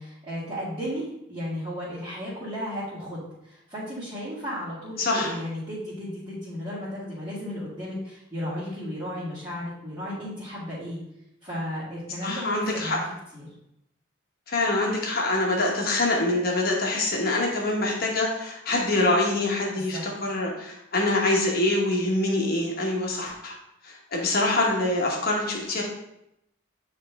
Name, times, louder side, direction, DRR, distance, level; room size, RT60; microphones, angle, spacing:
voice 1, 0.0-11.0 11.4-13.0 13.3-13.5 19.7-20.0, equal, 20° right, -14 dB, 2.2 m, -34 dB
voice 2, 5.0-5.3 12.2-13.0 14.5-23.5 23.8-25.8, left 2 dB, 45° left, -1 dB, 1.2 m, -25 dB
9.3 x 3.3 x 3.5 m, 0.82 s
head